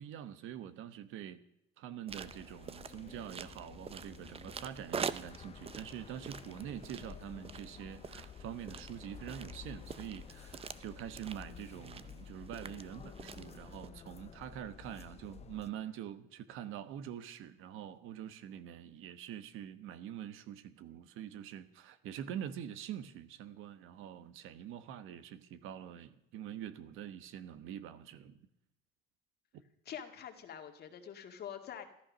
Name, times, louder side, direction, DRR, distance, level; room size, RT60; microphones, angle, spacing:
voice 1, 0.0-1.4 1.8-28.4 29.5-29.6, right 10 dB, 80° right, 1.2 m, -45 dB
sound 1, 2.1-15.7, left 7 dB, 30° left, 0.6 m, -52 dB
sound 2, 2.1-13.9, right 6 dB, 30° right, 0.6 m, -46 dB
voice 2, 29.9-31.9, left 8 dB, 50° left, 2.0 m, -45 dB
14.0 x 13.5 x 6.3 m
cardioid pair, 140°, 21 cm